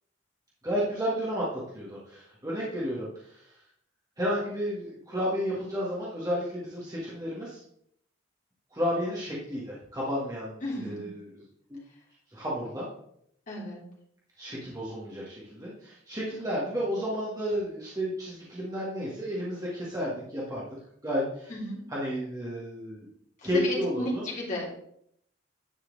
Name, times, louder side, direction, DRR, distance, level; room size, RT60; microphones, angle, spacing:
voice 1, 0.6-3.5 4.2-7.6 8.7-11.4 12.3-12.9 14.4-20.6 21.0-21.5 21.9-23.1 23.4-24.2, equal, 15° right, -7 dB, 1.6 m, -32 dB
voice 2, 10.6-11.1 13.5-13.8 21.5-21.8 23.4-24.7, left 1 dB, 40° left, -5 dB, 2.9 m, -33 dB
10.0 x 4.3 x 4.0 m, 0.70 s
head